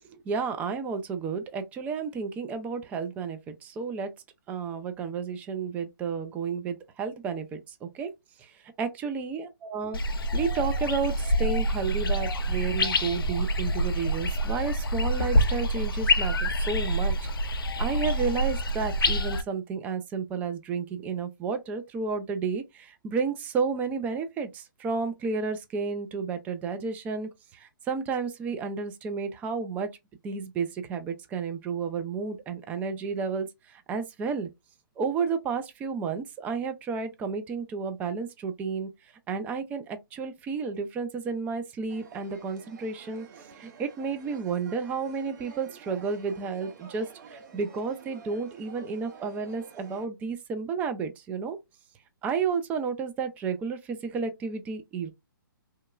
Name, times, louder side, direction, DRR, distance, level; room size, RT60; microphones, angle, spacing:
voice 1, 0.1-4.1 4.5-8.1 8.4-8.5 8.8-10.0 10.3-17.2 17.5-29.9 30.2-34.5 35.0-38.9 39.3-43.3 43.6-51.6 52.2-55.1, right 5 dB, 15° right, 0.3 m, -32 dB
sound 1, 9.9-19.4, equal, 80° left, 0.6 m, -26 dB
sound 2, 41.9-50.1, right 6 dB, 55° right, 0.8 m, -50 dB
2.8 x 2.2 x 2.3 m
figure-of-eight pair, 135°, 12 cm